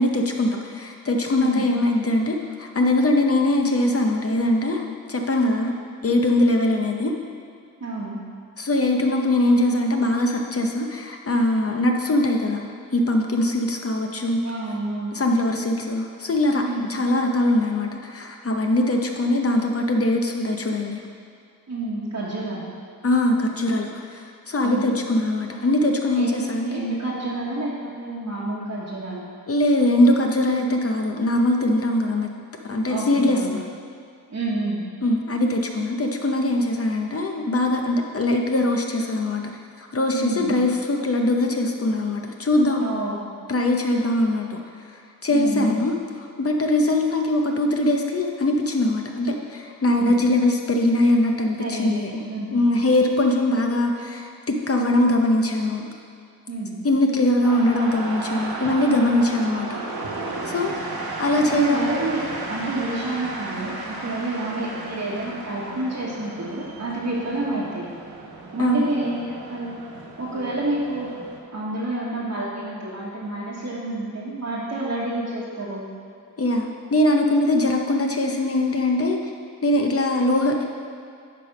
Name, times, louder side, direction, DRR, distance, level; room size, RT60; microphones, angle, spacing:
voice 1, 0.0-5.7 6.0-7.1 8.6-12.6 12.9-14.4 15.1-16.6 16.9-21.0 23.0-26.9 29.5-32.3 32.6-33.6 35.0-39.4 39.8-42.8 43.5-44.6 45.2-52.1 52.5-55.9 56.8-59.8 60.5-60.8 61.2-61.8 68.6-68.8 76.4-79.2 79.6-80.6, left 1 dB, 40° left, 2 dB, 0.8 m, -22 dB
voice 2, 1.4-1.7 7.8-8.2 14.4-15.2 16.6-16.9 21.7-22.7 24.6-24.9 26.1-29.3 32.9-33.6 34.3-34.8 40.1-40.6 42.8-43.3 45.3-45.7 49.8-50.2 51.6-52.5 56.5-56.7 59.3-59.6 61.4-67.9 68.5-69.7 70.2-71.1 71.5-75.9, right 2 dB, 50° right, -8 dB, 1.3 m, -29 dB
sound 1, 57.4-71.4, right 2 dB, 80° right, 1.1 m, -34 dB
9.8 x 3.4 x 5.8 m, 2.4 s
cardioid pair, 75°, 36 cm